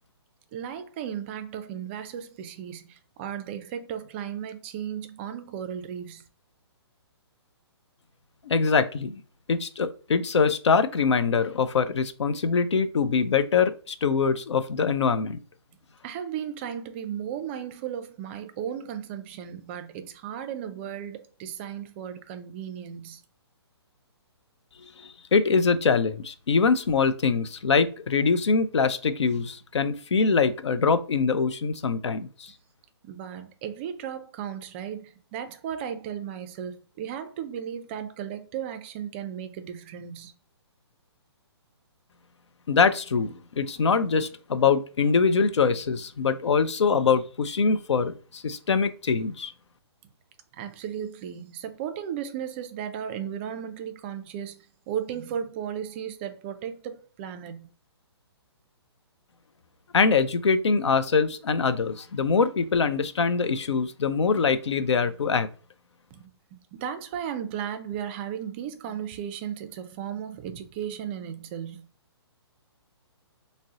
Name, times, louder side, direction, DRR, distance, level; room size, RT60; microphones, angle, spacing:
voice 1, 0.5-6.2 16.0-23.2 33.0-40.3 50.5-57.7 66.1-66.2 66.5-71.8, right 9 dB, 25° right, 0.3 m, -35 dB
voice 2, 8.4-9.2 9.5-15.4 25.0-32.5 42.7-49.5 59.9-65.5, left 5 dB, 90° left, 0.4 m, -23 dB
2.6 x 2.0 x 3.6 m
hypercardioid pair, 140°, 14 cm